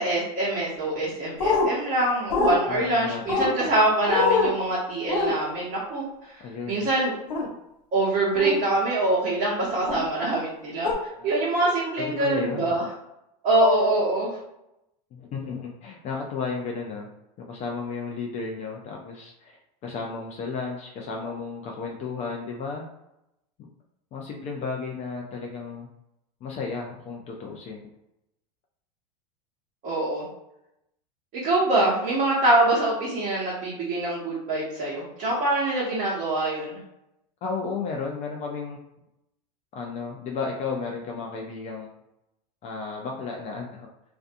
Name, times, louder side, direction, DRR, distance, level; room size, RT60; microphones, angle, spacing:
voice 1, 0.0-6.0 6.7-7.1 7.9-10.9 11.2-12.8 13.4-14.4 29.8-30.3 31.3-36.8, right 2 dB, 40° right, -7 dB, 0.9 m, -24 dB
sound 1, 1.4-1.7 2.3-2.6 3.3-3.5 4.1-4.5 5.1-5.3 7.3-7.5 8.3-8.6 9.9-10.0 10.8-10.9, left 4 dB, 80° left, 0.7 m, -23 dB
voice 2, 2.7-3.8 6.4-6.9 11.2-11.3 12.0-12.7 15.1-17.1 17.4-22.8 23.6-23.7 24.1-25.9 26.4-27.9 37.4-38.8 39.7-41.9 42.6-43.9, left 4 dB, 35° left, 0 dB, 0.4 m, -33 dB
2.5 x 2.2 x 2.5 m, 0.86 s
supercardioid pair, 120°, 21 cm